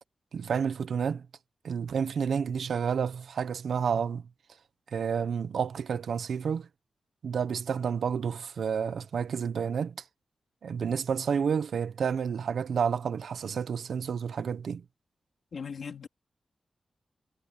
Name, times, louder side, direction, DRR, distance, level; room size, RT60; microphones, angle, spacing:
voice 1, 0.3-1.3 1.6-4.3 4.9-6.7 7.2-10.0 10.6-14.8, right 7 dB, 90° right, 0.9 m, -30 dB
voice 2, 15.5-16.1, left 6 dB, 60° left, 3.6 m, -38 dB
wide cardioid pair, 165°, 0 cm